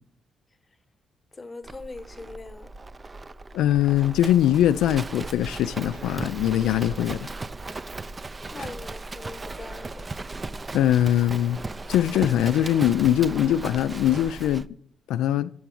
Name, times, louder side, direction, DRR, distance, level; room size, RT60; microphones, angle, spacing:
voice 1, 1.3-2.7 8.5-10.1, left 3 dB, 25° left, 0.9 m, -41 dB
Livestock farm animals working animals, 1.6-14.7, right 3 dB, 25° right, 0.4 m, -37 dB
voice 2, 3.5-7.3 8.6-8.7 10.7-11.6 11.9-14.7 15.1-15.5, left 12 dB, 90° left, 0.3 m, -22 dB
7.7 x 7.0 x 7.5 m
cardioid pair, 90°, 0 cm